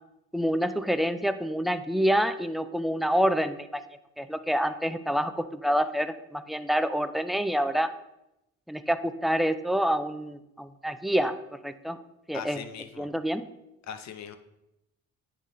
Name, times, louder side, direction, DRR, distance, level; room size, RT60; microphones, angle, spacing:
voice 1, 0.3-3.7 4.2-7.9 8.7-11.3 11.6-12.0 12.3-12.6 13.0-13.4, equal, ahead, 10 dB, 0.3 m, -27 dB
voice 2, 12.3-13.1 13.9-14.4, left 8 dB, 65° left, 8 dB, 0.7 m, -40 dB
9.7 x 3.9 x 3.1 m, 0.88 s
cardioid pair, 90°, 30 cm